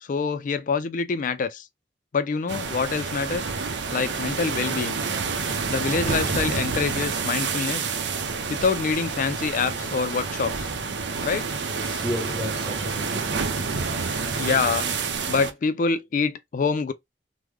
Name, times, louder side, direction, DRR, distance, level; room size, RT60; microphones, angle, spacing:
voice 1, 0.0-1.7 2.1-3.5 3.9-5.0 5.7-7.9 8.5-10.7 11.2-11.5 14.3-14.9 15.3-16.9, left 5 dB, 50° left, 0.4 m, -26 dB
sound 1, 2.5-15.5, right 5 dB, 80° right, 0.6 m, -28 dB
voice 2, 11.7-14.5, equal, 5° left, 0.8 m, -34 dB
3.6 x 2.1 x 3.1 m
head